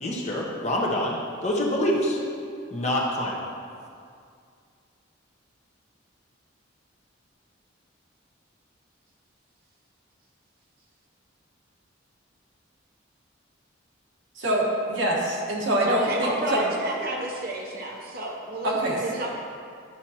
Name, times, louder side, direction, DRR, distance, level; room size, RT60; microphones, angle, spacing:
voice 1, 0.0-1.2 1.4-2.2 2.7-3.4, left 1 dB, 35° left, -3 dB, 1.0 m, -26 dB
voice 2, 14.3-16.6 18.6-19.0, right 1 dB, 70° right, -4 dB, 1.5 m, -25 dB
voice 3, 15.8-19.3, right 1 dB, 45° right, -1 dB, 0.8 m, -30 dB
11.0 x 5.9 x 2.9 m, 2.3 s
head